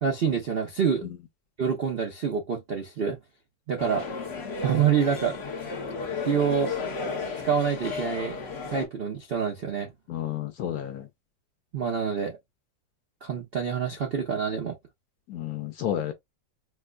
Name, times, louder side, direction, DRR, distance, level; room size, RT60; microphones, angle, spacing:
voice 1, 0.0-1.1 1.6-3.2 3.7-4.1 4.6-5.4 6.2-6.7 7.4-8.4 8.7-9.9 11.7-12.4 13.2-14.8, right 7 dB, 85° right, 0.5 m, -26 dB
sound 1, 3.8-8.9, left 4 dB, 45° left, 0.9 m, -34 dB
voice 2, 10.1-11.1 15.3-16.1, left 11 dB, 70° left, 0.9 m, -31 dB
4.4 x 2.2 x 2.4 m
omnidirectional pair, 2.0 m